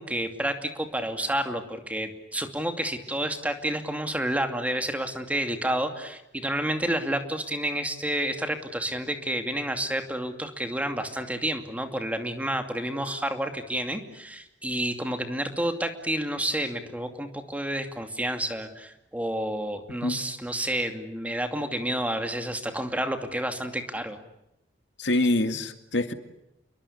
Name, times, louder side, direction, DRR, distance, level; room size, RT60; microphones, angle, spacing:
voice 1, 0.0-24.2, right 1 dB, 10° right, 6 dB, 2.5 m, -30 dB
voice 2, 25.0-26.1, left 2 dB, 75° left, 8 dB, 2.1 m, -25 dB
29.5 x 22.5 x 8.5 m, 0.85 s
head